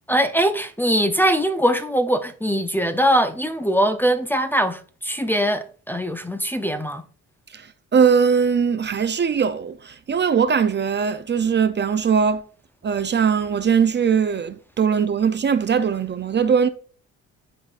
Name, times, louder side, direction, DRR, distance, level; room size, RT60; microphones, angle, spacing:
voice 1, 0.1-7.0, equal, 5° left, 0.6 m, -21 dB
voice 2, 7.5-12.4 12.8-16.7, right 6 dB, 35° right, 0.6 m, -20 dB
10.5 x 3.9 x 2.5 m
cardioid pair, 90°, 30 cm